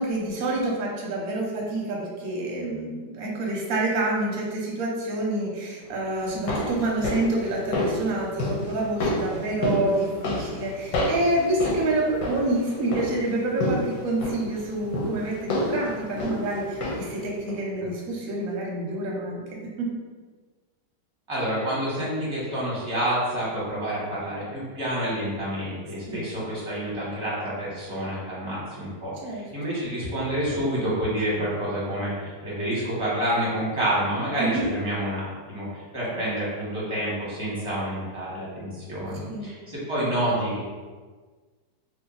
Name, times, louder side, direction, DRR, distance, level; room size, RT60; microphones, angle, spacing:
voice 1, 0.0-19.4 19.8-20.0 26.1-26.3 29.2-29.5 34.4-34.7 36.1-36.2 39.3-39.5, right 2 dB, 60° right, -2 dB, 1.1 m, -27 dB
sound 1, 6.2-17.2 17.5-17.6, left 1 dB, 85° left, 1.4 m, -30 dB
voice 2, 21.3-40.6, right 1 dB, 20° right, -8 dB, 1.2 m, -28 dB
2.9 x 2.8 x 3.9 m, 1.4 s
omnidirectional pair, 1.8 m